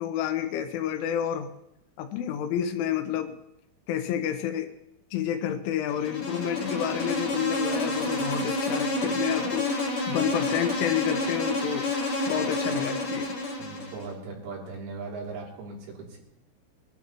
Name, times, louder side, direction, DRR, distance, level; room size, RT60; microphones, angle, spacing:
voice 1, 0.0-1.5 2.0-3.4 3.9-4.7 5.1-11.9 12.3-13.4, left 10 dB, 80° left, 7 dB, 3.0 m, -29 dB
Insect, 5.9-14.1, left 2 dB, 60° left, 1.6 m, -29 dB
voice 2, 13.6-16.2, right 4 dB, 85° right, -4 dB, 5.7 m, -38 dB
24.0 x 12.0 x 2.9 m, 0.80 s
omnidirectional pair, 5.9 m